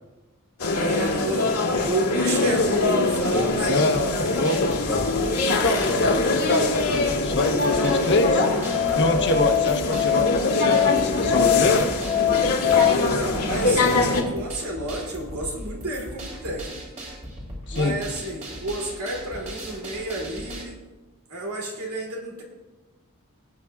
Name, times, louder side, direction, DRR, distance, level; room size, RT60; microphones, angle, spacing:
sound 1, 0.6-14.2, left 2 dB, 85° left, 1.7 m, -23 dB
voice 1, 0.7-1.5 1.8-3.9 12.9-16.8 17.7-20.8 21.3-22.4, right 1 dB, 70° right, -1 dB, 2.9 m, -30 dB
voice 2, 3.7-5.0 5.5-8.5 8.9-11.9 17.7-18.0, left 2 dB, 55° left, 4 dB, 1.1 m, -25 dB
sound 2, 3.9-20.6, equal, 35° right, 3.2 m, -38 dB
Musical instrument, 7.3-12.9, left 12 dB, 30° left, 0.8 m, -24 dB
19.0 x 8.3 x 2.4 m, 1.2 s
head